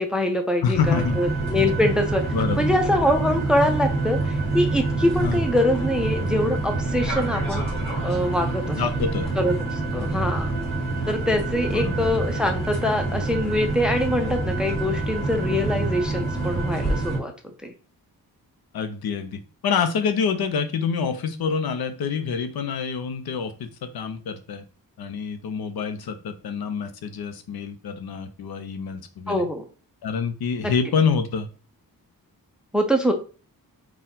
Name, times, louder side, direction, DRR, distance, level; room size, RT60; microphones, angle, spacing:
voice 1, 0.0-2.2 2.6-7.6 8.0-8.8 9.4-10.5 11.1-17.3 17.6-17.7 29.3-29.7 32.7-33.1, left 1 dB, ahead, 4 dB, 0.4 m, -24 dB
voice 2, 0.6-1.2 2.3-2.7 5.2-5.4 8.7-9.3 10.3-10.4 11.7-12.1 18.7-24.6 25.0-29.5 30.0-31.5, left 6 dB, 80° left, 8 dB, 0.7 m, -26 dB
sound 1, 0.7-17.2, right 2 dB, 15° left, 1.6 m, -26 dB
4.4 x 2.3 x 3.7 m, 0.36 s
wide cardioid pair, 160°, 37 cm